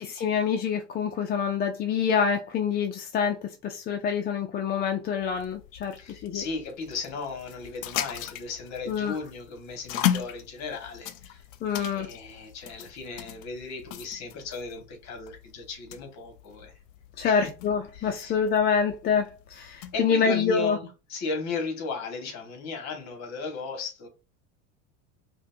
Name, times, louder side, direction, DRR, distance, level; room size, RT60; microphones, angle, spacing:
voice 1, 0.0-6.4 8.9-9.2 11.6-12.1 17.2-20.8, left 6 dB, 25° left, 0.4 m, -26 dB
sound 1, 5.2-20.1, left 11 dB, 85° left, 0.6 m, -37 dB
voice 2, 6.0-11.4 11.8-16.8 17.2-17.5 17.9-18.4 19.9-24.1, left 4 dB, 45° left, 1.5 m, -36 dB
5.0 x 2.2 x 2.5 m
supercardioid pair, 115°, 38 cm